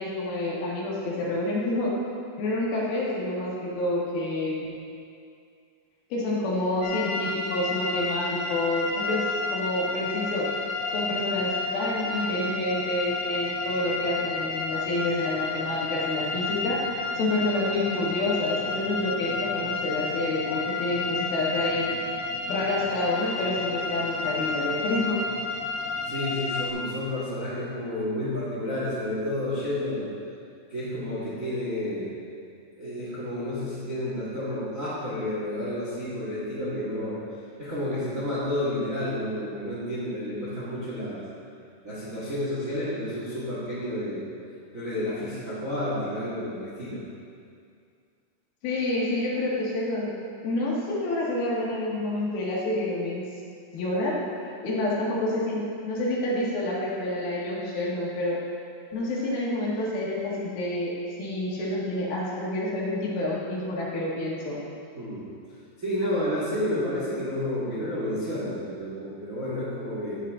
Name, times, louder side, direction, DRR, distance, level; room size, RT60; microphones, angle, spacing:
voice 1, 0.0-1.9 2.4-4.7 6.1-10.5 10.9-16.8 17.1-21.9 22.5-25.2 48.6-50.1 50.4-53.2 53.7-54.2 54.6-58.4 58.9-60.9 61.2-64.6, left 1 dB, 65° left, -5 dB, 3.2 m, -28 dB
sound 1, 6.8-26.7, left 3 dB, 85° left, 1.9 m, -31 dB
voice 2, 26.1-30.1 30.7-32.1 32.7-37.2 37.6-41.2 41.8-44.3 44.7-47.0 64.9-65.3 65.8-70.2, left 1 dB, 35° right, -10 dB, 1.2 m, -30 dB
10.5 x 8.5 x 3.7 m, 2.3 s
omnidirectional pair, 4.9 m